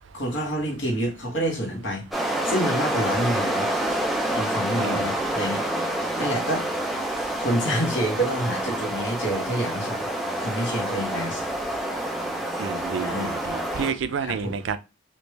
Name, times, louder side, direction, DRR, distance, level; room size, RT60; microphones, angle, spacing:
voice 1, 0.1-3.7 4.3-6.7 7.4-10.1 10.4-11.4 13.0-13.3 14.2-14.5, equal, 65° left, 1.3 m, -28 dB
sound 1, 2.1-13.9, right 1 dB, ahead, 0.5 m, -27 dB
voice 2, 12.6-14.8, right 6 dB, 75° right, 0.4 m, -30 dB
3.2 x 2.5 x 3.2 m
head